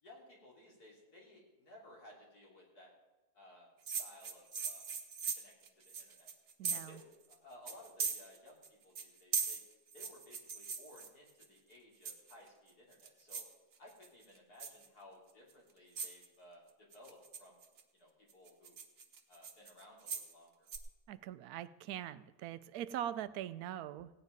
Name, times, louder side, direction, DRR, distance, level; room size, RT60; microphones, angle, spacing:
voice 1, 0.0-2.9 3.3-4.8 5.3-6.3 6.7-9.6 9.9-13.4 13.8-17.6 17.9-18.7 19.3-20.7, left 1 dB, 85° left, -3 dB, 3.8 m, -59 dB
sound 1, 3.9-7.0 7.3-7.4 7.7-8.7 8.9-11.4 12.0-12.5 12.9-13.5 13.9-14.2 14.6-14.9 15.5-15.6 16.0-16.3 16.9-17.8 18.3-20.3 20.7-20.8, right 6 dB, 60° right, 1.5 m, -40 dB
voice 2, 6.6-7.0 21.1-24.1, right 11 dB, 80° right, 15 dB, 1.1 m, -42 dB
16.5 x 9.5 x 5.2 m, 1.2 s
omnidirectional pair, 1.6 m